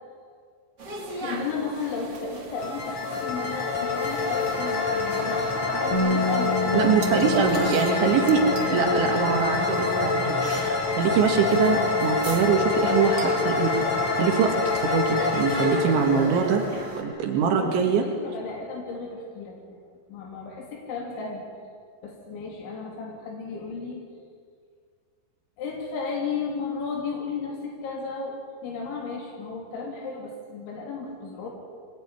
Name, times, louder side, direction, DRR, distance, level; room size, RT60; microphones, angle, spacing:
sound 1, 0.8-17.0, right 2 dB, 30° right, 2.3 m, -39 dB
voice 1, 1.1-7.9 17.4-19.8 20.1-21.5 22.0-24.0 25.6-31.5, left 4 dB, 85° left, -1 dB, 5.5 m, -34 dB
sound 2, 2.6-17.4, left 4 dB, 40° left, 4.3 m, -26 dB
Bass guitar, 5.9-10.6 10.9-12.2, left 2 dB, 55° left, 6.4 m, -32 dB
voice 2, 6.7-8.5 8.7-13.7 14.1-16.7 17.0-18.1, right 6 dB, 80° right, 2 dB, 4.2 m, -23 dB
26.0 x 19.5 x 10.0 m, 2.1 s
omnidirectional pair, 5.2 m